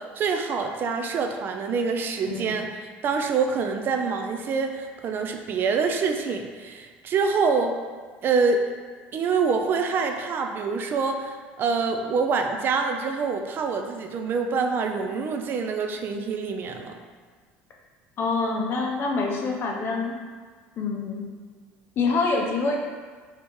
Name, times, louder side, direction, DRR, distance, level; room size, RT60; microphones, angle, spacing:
voice 1, 0.0-7.8 8.2-8.6 9.1-16.9, right 5 dB, 45° right, 5 dB, 0.3 m, -26 dB
voice 2, 18.2-20.1 20.8-21.2 22.0-22.8, left 3 dB, 45° left, 0 dB, 0.6 m, -26 dB
2.9 x 2.8 x 3.5 m, 1.5 s
supercardioid pair, 105°, 5 cm